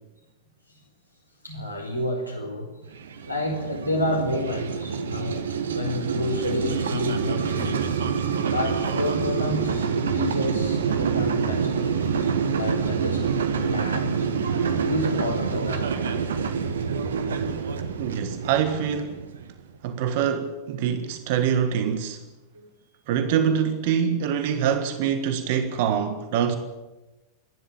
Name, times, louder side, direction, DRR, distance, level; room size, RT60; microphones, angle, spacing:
voice 1, 1.4-2.9 3.3-7.9 8.4-14.3 14.8-16.0 22.5-22.7, left 1 dB, 85° right, 5.0 m, -30 dB
sound 1, 2.9-19.6, right 6 dB, 65° right, 1.6 m, -27 dB
voice 2, 18.0-19.2 19.8-22.2 23.1-26.6, right 8 dB, 50° right, 1.5 m, -24 dB
27.0 x 11.5 x 8.9 m
figure-of-eight pair, 90°, 0 cm